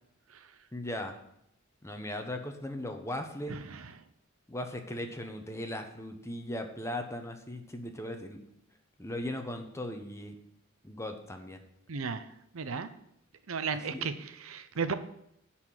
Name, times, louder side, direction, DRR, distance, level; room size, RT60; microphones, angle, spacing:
voice 1, 0.7-1.2 1.8-3.6 4.5-8.4 9.0-10.3 10.8-11.6 13.9-14.1, left 1 dB, 15° left, 5 dB, 0.9 m, -38 dB
voice 2, 3.5-3.8 11.9-12.3 12.5-12.9 13.5-14.9, right 5 dB, 80° right, 11 dB, 0.7 m, -34 dB
10.5 x 4.3 x 7.5 m, 0.75 s
head